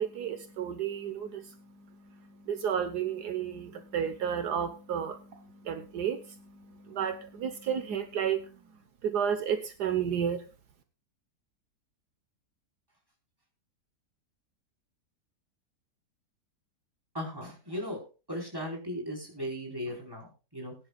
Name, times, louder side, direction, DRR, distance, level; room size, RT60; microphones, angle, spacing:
voice 1, 0.0-8.5 9.0-10.4, right 8 dB, 75° right, 8 dB, 1.7 m, -32 dB
voice 2, 17.1-18.0 18.3-20.8, equal, 15° right, -1 dB, 4.6 m, -37 dB
20.5 x 10.0 x 2.4 m, 0.31 s
omnidirectional pair, 1.7 m